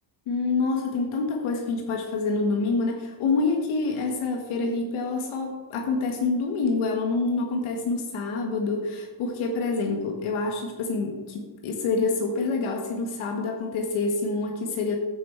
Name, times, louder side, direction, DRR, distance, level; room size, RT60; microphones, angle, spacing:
voice 1, 0.3-15.0, left 3 dB, 75° left, 3 dB, 1.5 m, -27 dB
14.0 x 5.2 x 4.5 m, 1.2 s
cardioid pair, 110°, 49 cm